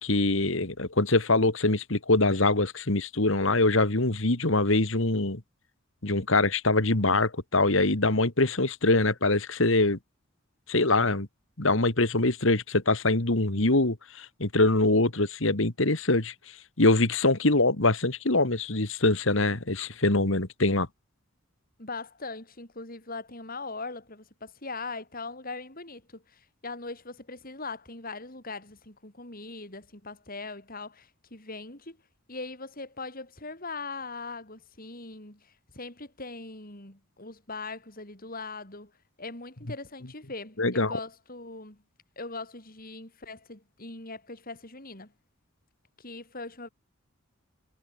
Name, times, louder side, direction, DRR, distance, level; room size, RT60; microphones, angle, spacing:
voice 1, 0.0-5.4 6.0-10.0 10.7-11.3 11.6-16.3 16.8-20.9 40.6-41.0, left 2 dB, 65° left, 2.2 m, -24 dB
voice 2, 21.8-32.0 32.3-38.9 39.2-41.8 42.2-45.1 46.0-46.7, left 3 dB, 45° left, 5.7 m, -40 dB
head